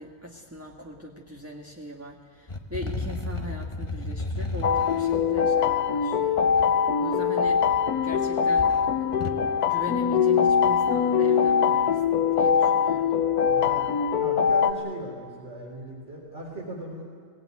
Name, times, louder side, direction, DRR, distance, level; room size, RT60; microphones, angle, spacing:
voice 1, 0.0-6.3 7.0-7.6 8.0-8.7 9.0-13.1, equal, 10° right, -1 dB, 1.5 m, -40 dB
sound 1, 2.5-6.6 7.5-8.2 8.5-9.4, left 2 dB, 20° left, 1.2 m, -34 dB
sound 2, 4.6-14.7, left 7 dB, 90° left, 1.4 m, -22 dB
voice 2, 13.4-17.0, right 1 dB, 50° right, -4 dB, 4.2 m, -38 dB
24.0 x 18.0 x 9.4 m, 2.2 s
omnidirectional pair, 1.6 m